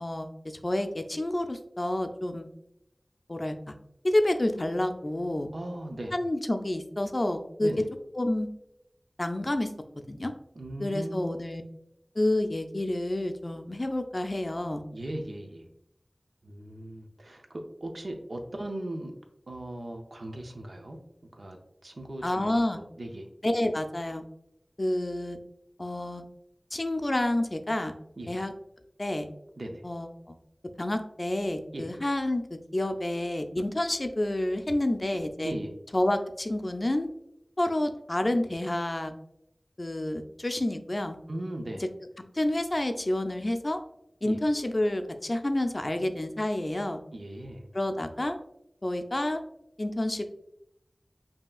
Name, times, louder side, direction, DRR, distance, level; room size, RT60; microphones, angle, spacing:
voice 1, 0.0-2.5 3.3-3.8 4.0-5.5 6.1-7.7 8.1-8.5 9.2-9.7 10.1-10.3 10.8-11.6 12.2-14.8 22.2-22.8 23.4-24.2 24.8-25.4 25.8-26.2 26.7-27.9 28.3-28.5 29.0-29.3 29.8-30.4 30.8-35.5 35.9-37.1 37.6-39.1 39.8-41.2 42.3-43.8 44.2-47.0 47.7-48.4 48.8-49.4 49.8-50.2, left 1 dB, 45° left, 6 dB, 0.4 m, -29 dB
voice 2, 5.5-6.1 7.6-7.9 10.5-11.4 14.9-15.7 16.4-19.1 19.5-21.0 21.3-23.3 28.2-28.3 29.6-29.8 31.7-31.9 35.4-35.7 41.3-41.8 44.2-44.4 47.1-47.7, right 1 dB, 80° right, 3 dB, 0.6 m, -38 dB
5.3 x 2.8 x 2.3 m, 0.80 s
wide cardioid pair, 55°, 0 cm